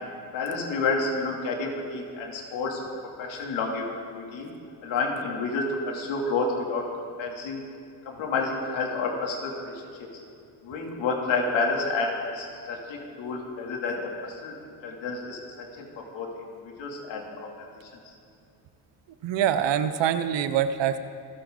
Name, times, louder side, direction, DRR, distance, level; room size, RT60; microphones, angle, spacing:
voice 1, 0.3-2.8 3.2-3.8 4.1-4.5 4.8-6.9 7.2-7.6 8.0-9.8 10.6-14.6 14.8-15.9 16.1-17.5 17.8-17.9, left 3 dB, 75° left, -1 dB, 3.1 m, -30 dB
voice 2, 19.2-21.0, right 9 dB, 70° right, 11 dB, 1.0 m, -24 dB
26.5 x 9.8 x 4.0 m, 2.4 s
cardioid pair, 100°, 45 cm